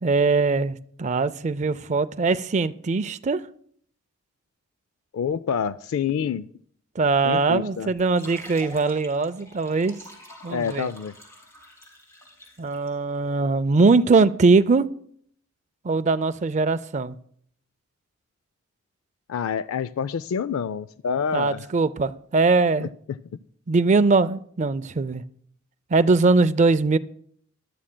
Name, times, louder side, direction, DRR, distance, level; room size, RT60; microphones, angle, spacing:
voice 1, 0.0-3.4 7.0-10.0 10.4-10.9 12.6-14.9 15.8-17.2 21.3-22.9 23.7-25.2 25.9-27.0, right 3 dB, 35° right, 15 dB, 0.4 m, -21 dB
voice 2, 5.1-6.5 7.2-7.9 10.5-11.1 19.3-21.6 22.8-23.2, left 7 dB, 90° left, 15 dB, 0.4 m, -27 dB
sound 1, 7.9-12.9, equal, 15° left, 3.5 m, -46 dB
20.5 x 12.5 x 2.2 m, 0.63 s
head